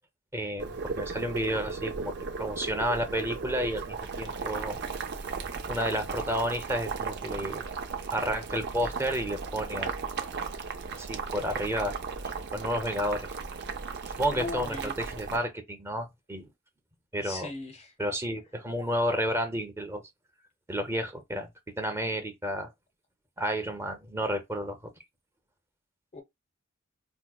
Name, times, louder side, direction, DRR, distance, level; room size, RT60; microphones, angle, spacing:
voice 1, 0.3-4.8 5.7-7.6 8.1-9.9 10.9-11.9 12.5-13.3 14.2-16.5 17.1-17.5 18.0-20.0 20.7-21.5 21.8-22.7 23.4-24.9, equal, 15° right, 0.6 m, -31 dB
Boiling, 0.6-15.4, right 5 dB, 55° right, 0.6 m, -36 dB
voice 2, 14.3-14.9 17.2-17.9 26.1-26.2, left 2 dB, 30° left, 0.5 m, -38 dB
4.6 x 2.2 x 2.3 m
head